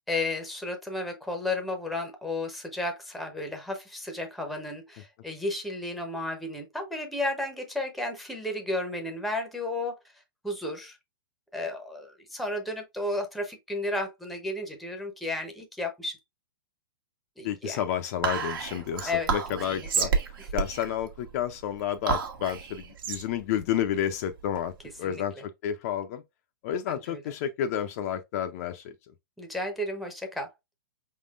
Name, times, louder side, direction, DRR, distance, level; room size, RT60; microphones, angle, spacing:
voice 1, 0.1-10.0 10.4-11.0 11.5-16.2 17.4-17.8 19.0-19.3 19.7-20.1 20.4-20.5 25.0-25.4 26.9-27.2 29.4-30.5, left 2 dB, ahead, 0.7 m, -33 dB
voice 2, 17.4-20.1 20.5-24.7 25.0-26.2 26.6-28.9, left 10 dB, 40° left, 0.5 m, -30 dB
Whispering, 18.2-24.9, right 6 dB, 65° right, 1.2 m, -31 dB
4.9 x 3.7 x 2.4 m
hypercardioid pair, 150°, 12 cm